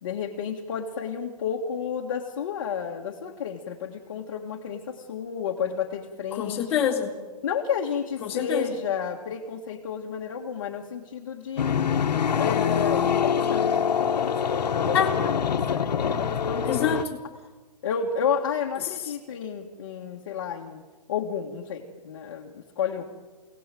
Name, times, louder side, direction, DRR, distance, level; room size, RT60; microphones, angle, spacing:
voice 1, 0.0-6.6 7.4-11.7 12.4-16.7 17.8-20.8 21.1-23.0, left 7 dB, 35° left, -1 dB, 1.6 m, -31 dB
voice 2, 6.3-7.1 8.2-8.7 14.9-15.1 16.7-17.2 18.8-19.1, left 8 dB, 10° left, -7 dB, 2.1 m, -26 dB
sound 1, 11.6-17.0, left 7 dB, 85° left, 1.5 m, -25 dB
28.0 x 18.0 x 7.6 m, 1.3 s
hypercardioid pair, 180°, 21 cm